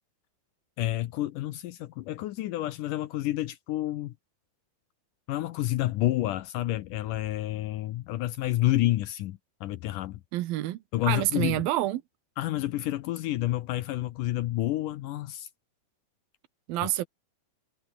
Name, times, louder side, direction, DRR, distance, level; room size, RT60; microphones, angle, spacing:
voice 1, 0.8-4.1 5.3-10.2 10.9-11.7 12.4-15.5, left 15 dB, 80° left, 1.9 m, -29 dB
voice 2, 10.3-12.0 16.7-17.1, right 15 dB, 70° right, 2.6 m, -28 dB
omnidirectional pair, 4.7 m